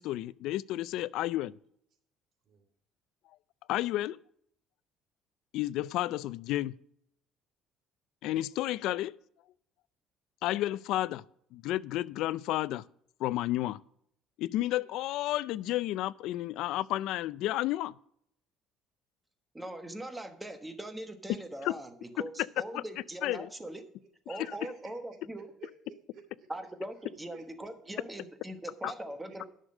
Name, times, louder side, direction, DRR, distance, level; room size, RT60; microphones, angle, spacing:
voice 1, 0.0-1.5 3.7-4.2 5.5-6.7 8.2-9.2 10.4-11.2 11.5-12.8 13.2-13.8 14.4-17.9 21.6-21.7 22.7-22.8 23.2-23.5 24.3-24.5 28.8-28.9, left 15 dB, 70° left, 0.4 m, -31 dB
voice 2, 19.5-23.8 24.3-25.5 26.5-29.5, right 1 dB, 10° right, 1.2 m, -41 dB
voice 3, 24.4-26.5 27.3-28.2 28.8-28.9 29.3-29.5, right 6 dB, 50° right, 2.8 m, -56 dB
11.0 x 6.5 x 6.3 m
cardioid pair, 145°, 0 cm